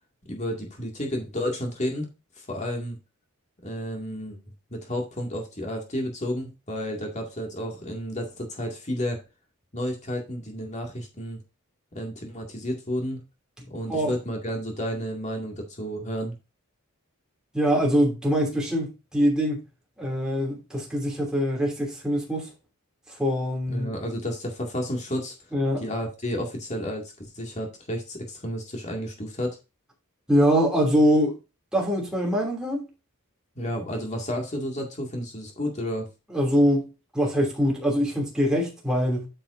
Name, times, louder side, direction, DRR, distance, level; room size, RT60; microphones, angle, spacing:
voice 1, 0.3-2.1 2.4-3.0 3.6-4.4 4.7-9.2 9.7-11.4 11.9-13.2 13.7-16.4 23.7-25.3 25.8-29.6 33.6-36.1, equal, 35° left, 2.1 m, -31 dB
voice 2, 17.5-19.6 20.0-22.5 23.2-23.9 25.5-25.8 30.3-31.3 31.7-32.8 36.3-36.9 37.1-39.3, equal, 5° right, 2.7 m, -23 dB
9.0 x 7.7 x 2.6 m
head